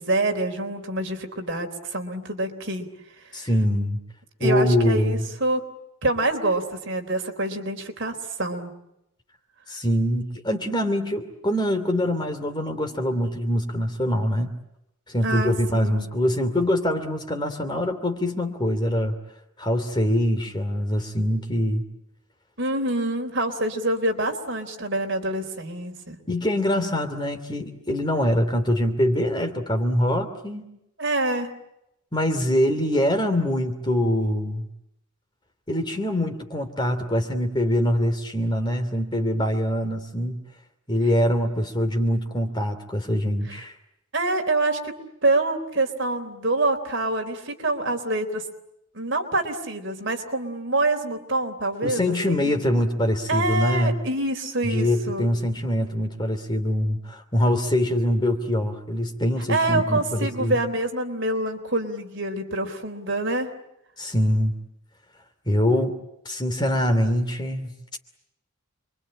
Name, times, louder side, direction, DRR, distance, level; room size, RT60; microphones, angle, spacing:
voice 1, 0.0-2.9 3.3-3.5 4.4-5.6 6.0-8.7 15.2-16.1 22.6-26.2 31.0-31.5 43.5-43.6 44.1-44.9 45.2-48.4 48.9-52.6 53.3-55.3 59.5-63.5, right 2 dB, 55° right, 5 dB, 3.7 m, -26 dB
voice 2, 3.3-4.0 4.4-5.1 9.7-14.5 15.1-19.1 19.6-21.8 26.3-30.6 32.1-34.7 35.7-40.4 40.9-43.7 51.8-53.9 54.6-60.6 64.0-64.5 65.5-65.9 66.2-67.7, left 1 dB, 20° left, 6 dB, 2.7 m, -24 dB
28.0 x 23.5 x 8.8 m, 0.85 s
head